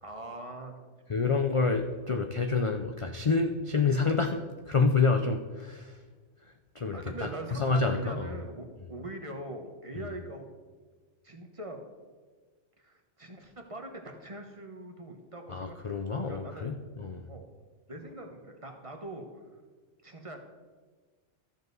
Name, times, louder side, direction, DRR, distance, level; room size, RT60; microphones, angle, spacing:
voice 1, 0.0-0.8 1.1-1.2 6.9-10.5 11.2-11.8 12.8-16.0 16.3-16.7 17.3-17.5 17.9-19.3 19.5-19.6 20.0-20.4, right 1 dB, 30° right, 4 dB, 1.1 m, -42 dB
voice 2, 1.1-6.0 6.7-7.3 7.6-8.3 15.5-17.2, left 4 dB, 45° left, 6 dB, 0.4 m, -28 dB
13.5 x 7.1 x 4.0 m, 1.4 s
omnidirectional pair, 1.2 m